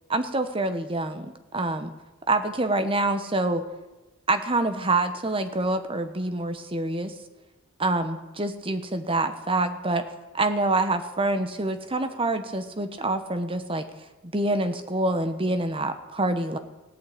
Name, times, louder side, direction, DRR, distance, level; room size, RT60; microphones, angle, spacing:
voice 1, 0.1-1.9 2.3-3.6 4.3-7.1 7.8-10.0 10.3-13.9 14.2-16.6, right 2 dB, 25° right, 8 dB, 1.1 m, -26 dB
17.0 x 8.4 x 8.5 m, 1.1 s
head